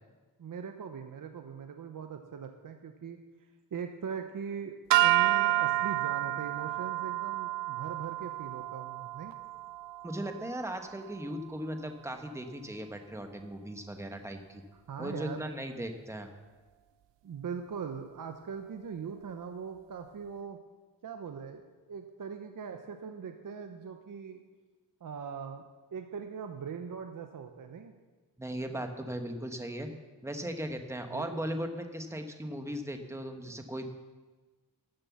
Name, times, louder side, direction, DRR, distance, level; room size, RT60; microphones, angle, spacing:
voice 1, 0.4-3.2 3.7-4.7 5.0-9.3 14.9-15.5 17.2-20.6 21.0-21.6 21.9-24.4 25.0-25.6 25.9-27.9 31.1-31.4, right 6 dB, 50° right, 5 dB, 0.8 m, -40 dB
sound 1, 4.9-11.3, right 16 dB, 85° right, 0.5 m, -30 dB
voice 2, 10.0-14.6 15.0-16.3 28.4-29.9 30.2-33.9, right 1 dB, 5° right, 5 dB, 1.1 m, -37 dB
12.5 x 7.6 x 7.0 m, 1.3 s
wide cardioid pair, 125°, 42 cm